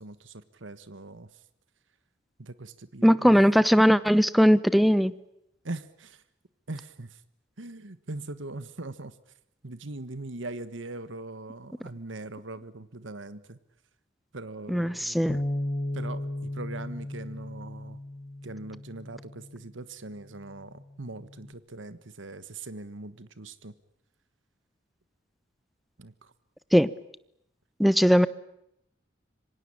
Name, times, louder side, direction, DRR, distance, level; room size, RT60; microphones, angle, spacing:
voice 1, 0.0-1.4 2.4-3.4 5.6-6.2 6.7-7.2 7.6-9.2 9.6-13.6 14.3-15.4 15.9-18.0 18.4-23.7 26.0-26.3, right 2 dB, 85° right, 14 dB, 1.5 m, -41 dB
voice 2, 3.0-5.1 14.7-15.4 26.7-26.9 27.8-28.3, equal, ahead, 16 dB, 1.0 m, -19 dB
Bass guitar, 15.3-19.7 20.4-21.5, left 1 dB, 35° left, 1.3 m, -36 dB
27.0 x 24.5 x 8.8 m, 0.78 s
head